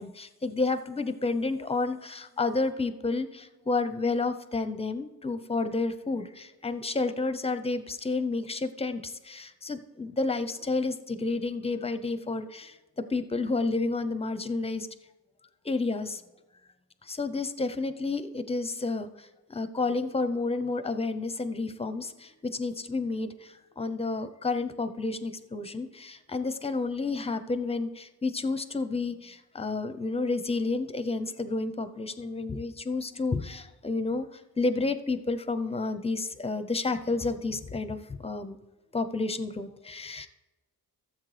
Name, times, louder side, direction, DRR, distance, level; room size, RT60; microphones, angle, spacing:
voice 1, 0.0-14.9 15.6-16.2 17.0-38.6 38.9-40.3, left 3 dB, 15° left, 11 dB, 0.6 m, -30 dB
13.5 x 7.4 x 3.3 m, 1.1 s
cardioid pair, 80°, 39 cm